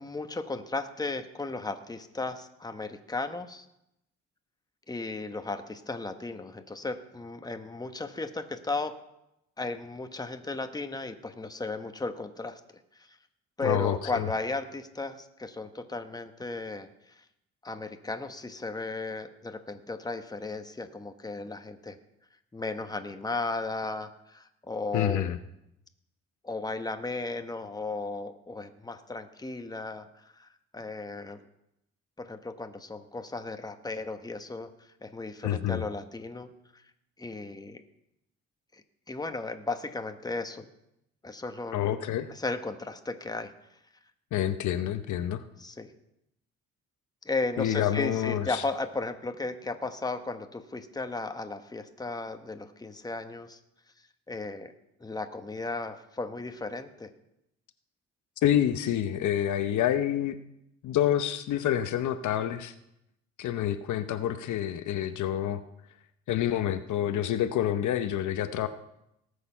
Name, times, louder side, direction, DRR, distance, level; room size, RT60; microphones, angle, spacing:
voice 1, 0.0-3.6 4.9-8.9 9.6-12.6 13.0-13.2 13.6-16.9 17.2-17.3 17.6-22.0 22.5-25.3 26.4-31.4 32.2-34.7 35.0-36.8 37.2-37.8 38.7-38.8 39.1-40.7 41.2-41.9 42.3-43.5 45.6-45.9 47.2-53.6 54.3-54.7 55.0-57.1, left 3 dB, 15° left, 7 dB, 1.1 m, -35 dB
voice 2, 13.6-14.3 24.9-25.4 35.4-35.9 41.7-42.3 44.3-45.4 47.6-48.6 58.4-60.4 60.8-62.7 63.4-65.6 66.3-68.7, left 11 dB, 75° left, 11 dB, 0.8 m, -28 dB
18.5 x 6.7 x 5.6 m, 0.83 s
cardioid pair, 90°, 30 cm